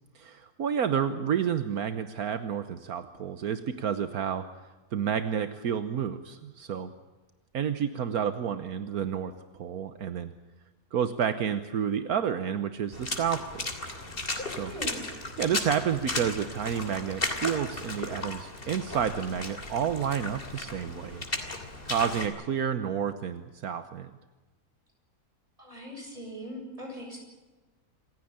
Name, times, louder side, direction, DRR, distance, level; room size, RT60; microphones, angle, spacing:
voice 1, 0.1-4.5 4.9-6.9 7.5-9.3 9.6-10.3 10.9-13.7 14.5-14.7 15.4-21.2 21.9-24.1, right 8 dB, 75° right, 11 dB, 1.5 m, -30 dB
Water / Splash splatter, 12.9-22.3, left 2 dB, 35° left, 3.3 m, -35 dB
voice 2, 14.6-15.0 25.6-27.2, equal, 20° right, 1 dB, 8.2 m, -40 dB
27.5 x 16.0 x 8.9 m, 1.2 s
omnidirectional pair, 1.6 m